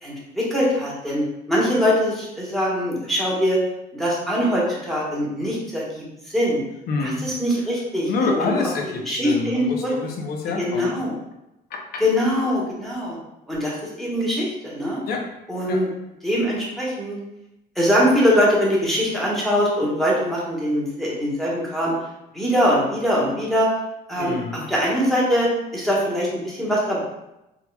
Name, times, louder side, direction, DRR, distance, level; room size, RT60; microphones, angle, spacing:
voice 1, 0.0-3.6 3.9-6.6 7.0-8.7 9.0-9.9 10.6-11.1 12.0-13.2 13.5-15.0 15.5-15.9 16.2-17.2 17.8-21.9 22.3-23.7 24.1-24.4 24.7-25.5 25.7-27.0, equal, ahead, -6 dB, 1.1 m, -22 dB
voice 2, 6.9-7.2 8.1-10.9 11.7-12.0 15.1-15.2 15.7-15.8 24.2-24.6, left 4 dB, 65° left, 2 dB, 0.7 m, -27 dB
3.6 x 3.0 x 2.2 m, 0.90 s
cardioid pair, 110°, 17 cm